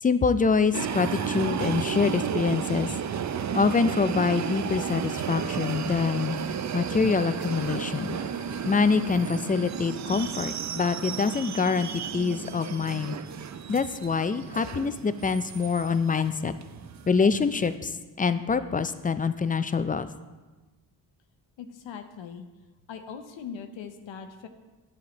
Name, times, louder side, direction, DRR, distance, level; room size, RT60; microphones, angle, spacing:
voice 1, 0.0-2.9 3.5-6.4 6.7-8.2 8.7-13.2 13.7-16.5 17.1-20.1, left 5 dB, 20° left, 12 dB, 0.3 m, -25 dB
sound 1, 0.7-17.8, right 8 dB, 40° right, 0.5 m, -33 dB
voice 2, 21.6-22.4 22.9-24.5, left 7 dB, 70° left, 7 dB, 0.7 m, -40 dB
8.7 x 7.3 x 3.0 m, 1.2 s
supercardioid pair, 50°, 47 cm